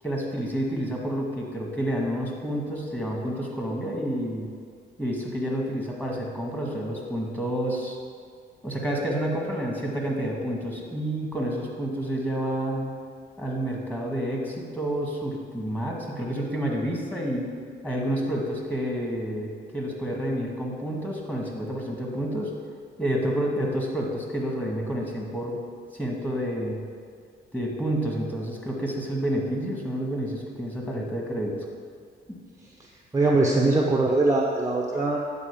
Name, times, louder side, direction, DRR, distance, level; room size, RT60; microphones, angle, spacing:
voice 1, 0.0-4.5 5.0-8.0 8.6-12.9 13.4-17.5 17.8-22.5 23.0-25.6 25.9-26.8 27.5-31.6, right 1 dB, 10° left, -2 dB, 2.0 m, -29 dB
voice 2, 33.1-35.2, right 2 dB, 15° right, -2 dB, 0.9 m, -22 dB
9.1 x 4.2 x 7.2 m, 2.1 s
cardioid pair, 90°, 20 cm